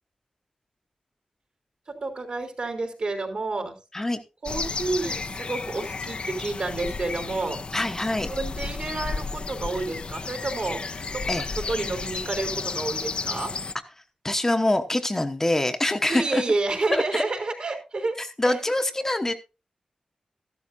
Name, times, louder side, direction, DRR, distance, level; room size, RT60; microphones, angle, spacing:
voice 1, 1.9-3.8 4.4-7.6 8.3-10.8 11.1-13.5 16.1-18.2 18.5-18.6, right 3 dB, 55° right, 3 dB, 3.7 m, -29 dB
sound 1, 4.4-13.7, left 4 dB, 50° left, 0.7 m, -33 dB
voice 2, 7.7-8.3 11.3-11.4 14.2-16.4 16.9-17.2 18.2-19.3, left 1 dB, 20° left, 5 dB, 1.0 m, -25 dB
14.0 x 12.0 x 2.7 m, 0.29 s
wide cardioid pair, 115°, 2 cm